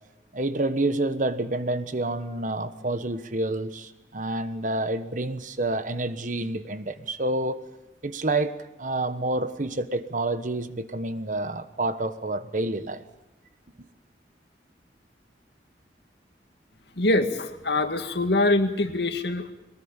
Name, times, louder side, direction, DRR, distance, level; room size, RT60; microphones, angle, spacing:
voice 1, 0.3-7.6 8.0-13.0, right 2 dB, 45° right, 1.3 m, -28 dB
voice 2, 17.0-19.5, left 2 dB, 70° left, 2.1 m, -24 dB
23.0 x 20.0 x 8.9 m
head